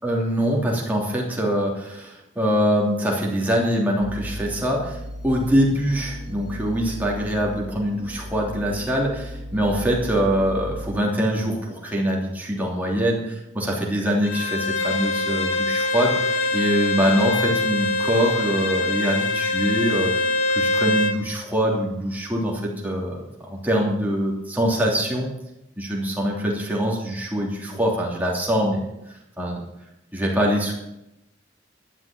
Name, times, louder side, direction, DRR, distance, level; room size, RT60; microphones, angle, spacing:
voice 1, 0.0-5.0 5.2-25.3 25.8-28.8 29.4-29.6 30.1-30.7, equal, 10° right, -3 dB, 3.0 m, -24 dB
sound 1, 4.0-11.0, equal, 70° right, 2.9 m, -36 dB
Bowed string instrument, 14.2-21.2, left 2 dB, 85° left, 1.6 m, -24 dB
11.5 x 7.5 x 8.9 m, 0.88 s
head